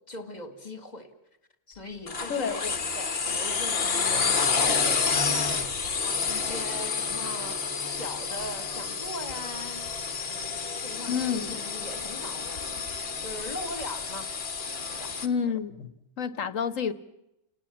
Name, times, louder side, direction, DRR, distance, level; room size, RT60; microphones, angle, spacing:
voice 1, 0.1-1.1 1.7-5.7 6.0-9.8 10.2-12.8 13.2-14.3 14.9-15.2, left 1 dB, 30° left, 8 dB, 2.2 m, -40 dB
sound 1, 2.1-15.3, left 5 dB, 45° left, 1.5 m, -29 dB
voice 2, 2.3-2.7 11.1-11.5 15.2-15.9 16.2-16.9, left 6 dB, 70° left, 13 dB, 1.5 m, -29 dB
29.5 x 19.0 x 7.3 m, 0.87 s
omnidirectional pair, 1.4 m